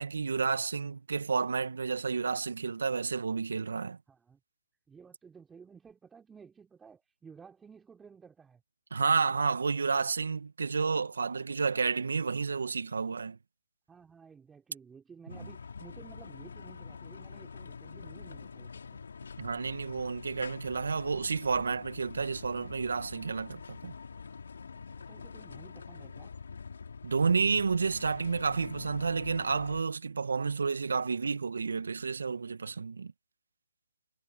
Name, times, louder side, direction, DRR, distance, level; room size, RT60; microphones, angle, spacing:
voice 1, 0.0-4.0 8.9-13.4 15.4-15.5 19.4-23.9 27.0-33.1, right 5 dB, 75° right, 1.9 m, -30 dB
voice 2, 4.1-4.4 4.9-8.6 13.9-19.0 24.7-26.3, right 6 dB, 10° right, 4.2 m, -54 dB
sound 1, 15.3-29.8, left 5 dB, 70° left, 4.0 m, -45 dB
figure-of-eight pair, 140°, 0 cm